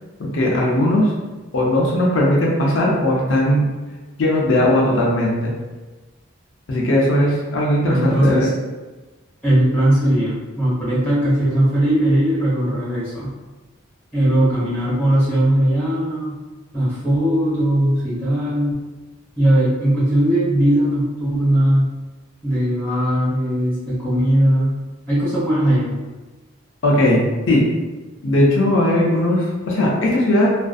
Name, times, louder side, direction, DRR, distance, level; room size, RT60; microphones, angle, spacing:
voice 1, 0.2-1.1 1.5-3.7 4.2-5.5 6.7-8.5 26.8-27.6 28.2-30.5, left 1 dB, 70° left, -3 dB, 0.5 m, -18 dB
voice 2, 7.8-8.5 9.4-13.3 14.1-16.4 16.7-18.8 19.3-21.9 22.4-24.7 25.1-25.9, right 1 dB, 10° left, -11 dB, 1.3 m, -18 dB
2.4 x 2.4 x 2.3 m, 1.2 s
head